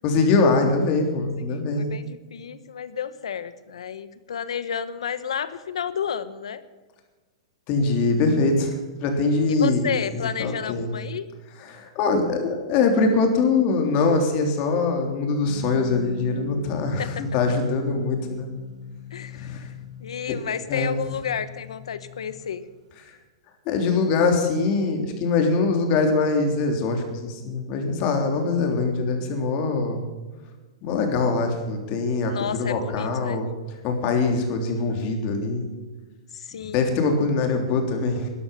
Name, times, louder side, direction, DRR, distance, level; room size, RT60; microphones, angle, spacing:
voice 1, 0.0-1.9 7.7-8.7 9.0-10.9 11.6-18.5 19.4-19.7 20.7-20.9 23.6-30.0 30.8-32.3 32.6-33.5 33.8-35.7 36.7-38.3, left 3 dB, 40° left, 4 dB, 3.3 m, -23 dB
voice 2, 1.4-6.6 9.5-11.3 17.0-17.3 19.1-19.6 20.0-22.6 32.3-33.4 36.3-36.9, left 8 dB, 85° left, 14 dB, 1.1 m, -31 dB
sound 1, 15.5-22.3, left 6 dB, 70° right, 6.3 m, -38 dB
13.0 x 11.0 x 7.0 m, 1.3 s
hypercardioid pair, 140°, 3 cm